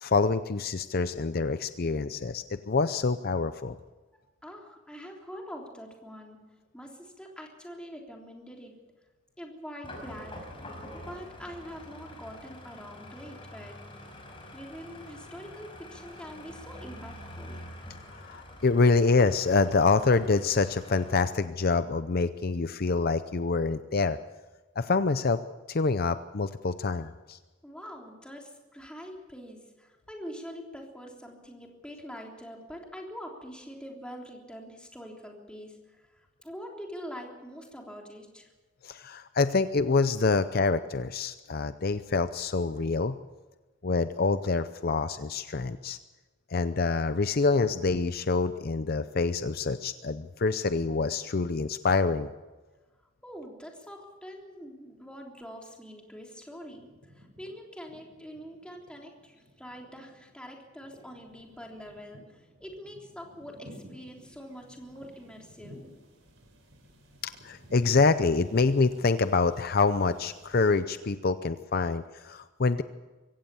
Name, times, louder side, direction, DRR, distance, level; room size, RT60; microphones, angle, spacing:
voice 1, 0.0-3.8 18.1-24.2 24.8-25.4 25.7-27.4 38.8-43.2 43.8-46.0 46.5-52.3 67.2-72.8, left 4 dB, 50° left, 11 dB, 0.6 m, -26 dB
voice 2, 4.4-6.4 6.7-8.7 9.4-10.4 10.9-13.8 14.5-17.6 27.6-36.1 36.4-38.5 53.2-65.8, equal, 5° left, 0 dB, 3.5 m, -44 dB
sound 1, 9.8-21.3, left 1 dB, 25° left, 5.5 m, -46 dB
sound 2, 55.7-56.3 56.5-70.8, equal, 90° right, 4.8 m, -54 dB
24.0 x 16.5 x 7.0 m, 1.2 s
head